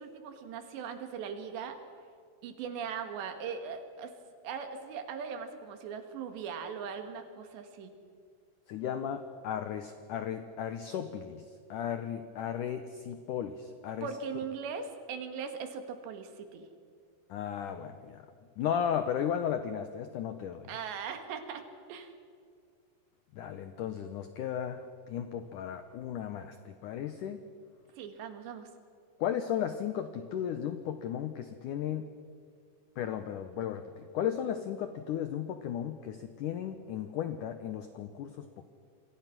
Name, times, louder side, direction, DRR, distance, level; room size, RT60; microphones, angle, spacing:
voice 1, 0.0-1.8 2.4-4.1 4.4-7.9 14.0-16.7 20.7-21.6 21.9-22.1 28.0-28.7, right 6 dB, 80° right, 7 dB, 4.0 m, -39 dB
voice 2, 8.7-11.4 11.7-14.1 17.3-18.2 18.6-20.7 23.3-27.4 29.2-32.1 33.0-38.7, left 9 dB, 85° left, 9 dB, 1.8 m, -35 dB
28.0 x 23.0 x 6.0 m, 2.2 s
omnidirectional pair, 5.0 m